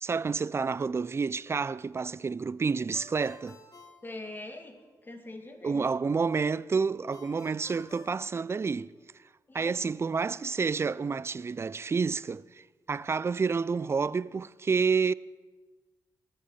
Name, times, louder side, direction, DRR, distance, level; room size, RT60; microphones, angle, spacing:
voice 1, 0.0-3.6 5.6-8.9 9.5-15.1, right 5 dB, 35° right, 0.4 m, -29 dB
Ringtone, 2.9-4.9 7.1-9.1, left 3 dB, 50° left, 2.1 m, -53 dB
voice 2, 4.0-4.7 5.0-5.9 9.5-9.9, left 2 dB, 25° left, 2.4 m, -43 dB
20.0 x 6.6 x 5.8 m
cardioid pair, 60°, 8 cm